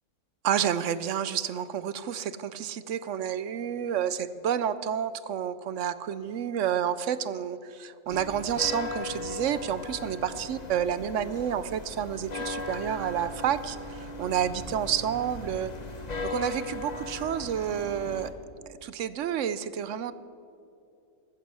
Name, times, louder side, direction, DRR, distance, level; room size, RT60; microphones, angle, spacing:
voice 1, 0.4-15.7 16.2-18.3 18.8-20.1, right 9 dB, 65° right, 15 dB, 0.8 m, -30 dB
sound 1, 8.1-18.3, left 2 dB, 30° left, 1.1 m, -38 dB
14.5 x 14.5 x 6.2 m, 2.7 s
omnidirectional pair, 1.6 m